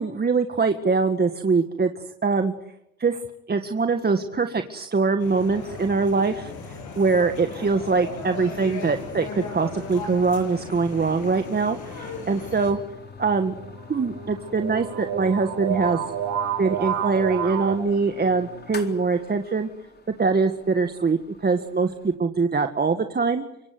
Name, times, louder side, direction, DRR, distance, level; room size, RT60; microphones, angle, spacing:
voice 1, 0.0-2.5 3.0-3.2 3.5-12.8 13.2-13.5 13.9-16.0 16.6-19.7 20.2-23.4, right 4 dB, 30° right, 7 dB, 1.8 m, -23 dB
sound 1, 5.2-12.7, left 4 dB, 80° left, 7.9 m, -37 dB
sound 2, 7.3-22.2, left 5 dB, 35° left, 4.0 m, -46 dB
sound 3, 12.4-17.7, right 8 dB, 80° right, 6.0 m, -30 dB
25.0 x 23.0 x 7.9 m, 0.85 s
cardioid pair, 90°, 30 cm